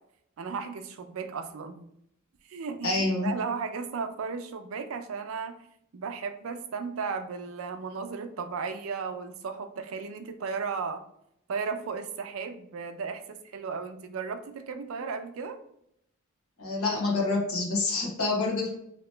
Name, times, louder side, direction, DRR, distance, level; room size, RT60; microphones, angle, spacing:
voice 1, 0.4-1.9 2.5-5.6 5.9-11.0 11.5-15.6, right 5 dB, 70° right, 9 dB, 0.4 m, -35 dB
voice 2, 2.8-3.3 16.6-18.7, left 3 dB, 80° left, -2 dB, 1.2 m, -27 dB
2.9 x 2.8 x 3.2 m, 0.75 s
head